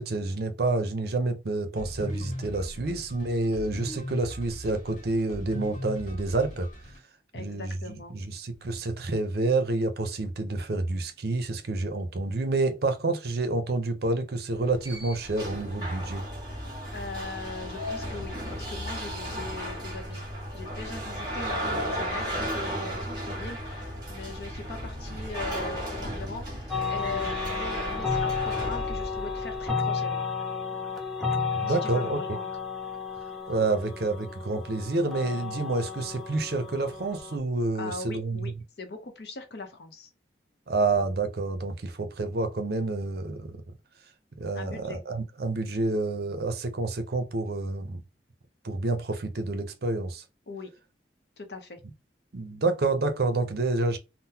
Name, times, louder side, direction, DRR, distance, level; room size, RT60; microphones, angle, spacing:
voice 1, 0.0-6.7 7.3-16.2 31.5-32.2 33.5-38.5 40.7-43.6 44.4-48.0 48.6-50.2 52.3-54.0, right 3 dB, 60° right, 0.6 m, -28 dB
sound 1, 1.8-7.0, equal, 45° left, 1.1 m, -39 dB
voice 2, 7.3-8.2 16.9-20.2 20.5-30.3 31.7-32.5 37.7-38.5 38.8-40.1 44.5-45.0 50.5-50.7 51.4-51.8, left 3 dB, 60° left, 0.7 m, -40 dB
sound 2, 14.5-29.7, equal, 25° right, 1.5 m, -35 dB
sound 3, 26.7-37.4, left 5 dB, ahead, 0.5 m, -32 dB
3.7 x 2.0 x 2.7 m
head